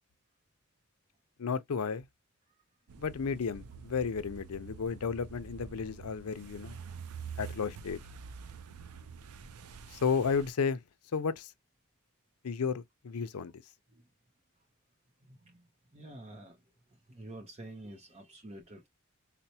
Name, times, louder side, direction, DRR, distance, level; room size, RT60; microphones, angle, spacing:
voice 1, 1.4-2.1 3.0-6.8 7.4-8.0 9.9-10.8 11.1-11.5 12.4-13.5, left 5 dB, 80° left, 0.5 m, -33 dB
sound 1, 2.9-10.5, right 6 dB, 85° right, 0.5 m, -47 dB
voice 2, 15.3-15.6 15.9-16.6 17.1-18.9, right 1 dB, 30° right, 0.6 m, -48 dB
4.3 x 2.1 x 2.7 m
head